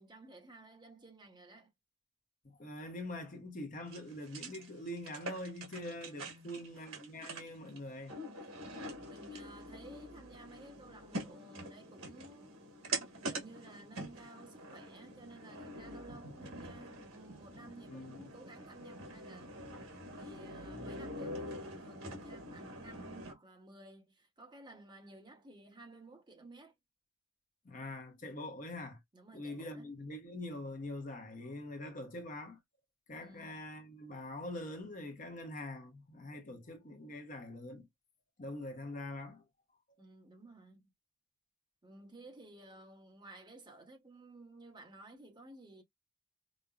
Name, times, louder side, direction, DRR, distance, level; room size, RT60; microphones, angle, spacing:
voice 1, 0.0-1.7 6.1-6.5 9.0-12.6 13.2-19.7 20.1-26.7 29.1-29.9 33.2-33.6 40.0-40.9 41.8-45.8, right 2 dB, 20° right, 1.1 m, -55 dB
voice 2, 2.6-8.2 17.9-18.3 27.6-29.0 29.3-32.6 33.1-37.9 38.4-39.4, left 1 dB, 40° left, 0.9 m, -44 dB
sound 1, 3.9-23.3, right 1 dB, 80° right, 1.5 m, -45 dB
5.1 x 2.1 x 2.4 m
head